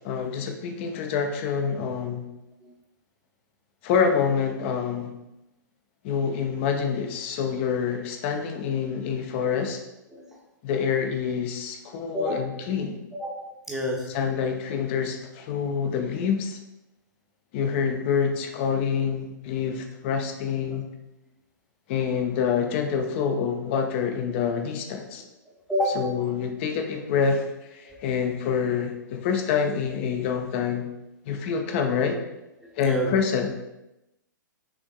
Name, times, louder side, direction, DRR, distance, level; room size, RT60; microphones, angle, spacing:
voice 1, 0.0-2.3 3.8-5.1 6.0-9.8 10.6-13.0 14.1-16.6 17.5-20.9 21.9-25.2 26.0-27.4 27.7-30.9 31.3-32.2 32.8-33.5, left 6 dB, 35° left, 5 dB, 0.6 m, -26 dB
voice 2, 13.1-14.2 19.6-19.8 20.2-20.3 20.6-20.8 25.2-25.3 25.7-26.2 27.8-28.0 32.6-33.2, equal, 5° right, -3 dB, 0.8 m, -30 dB
5.8 x 3.5 x 2.2 m, 0.93 s
figure-of-eight pair, 110°, 11 cm